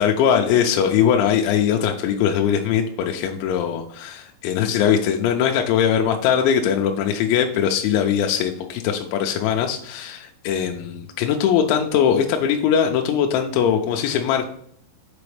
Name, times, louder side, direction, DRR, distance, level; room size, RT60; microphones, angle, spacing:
voice 1, 0.0-10.2 10.4-14.5, left 8 dB, 85° left, 3 dB, 2.9 m, -20 dB
6.9 x 5.0 x 3.2 m, 0.62 s
omnidirectional pair, 5.3 m